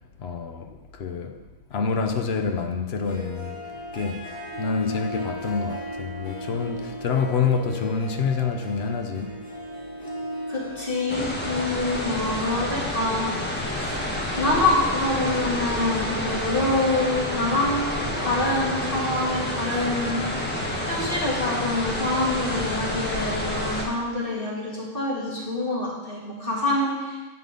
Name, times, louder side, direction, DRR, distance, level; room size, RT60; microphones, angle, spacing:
voice 1, 0.2-1.4 1.7-3.6 3.9-9.4, left 5 dB, 55° left, 0.9 m, -27 dB
Harp, 2.9-14.1, equal, 80° left, 2.2 m, -37 dB
voice 2, 10.5-13.3 13.7-14.0 14.4-17.9 18.2-20.2 20.9-27.2, left 2 dB, 40° left, 2.6 m, -26 dB
sound 1, 11.1-23.8, left 1 dB, 10° left, 1.3 m, -29 dB
9.6 x 5.7 x 5.2 m
omnidirectional pair, 1.4 m